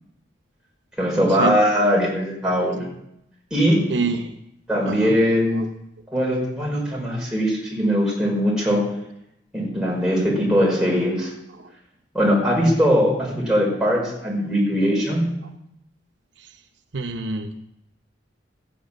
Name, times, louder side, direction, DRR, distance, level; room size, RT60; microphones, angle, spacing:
voice 1, 1.0-2.9 3.5-3.8 4.7-5.6 6.1-8.8 9.5-11.3 12.1-15.3, equal, 5° right, -4 dB, 5.6 m, -20 dB
voice 2, 3.9-4.3 4.8-5.2 5.6-5.7 11.6-11.7 16.9-17.6, right 4 dB, 75° right, 6 dB, 0.9 m, -26 dB
14.5 x 9.2 x 7.5 m, 0.82 s
head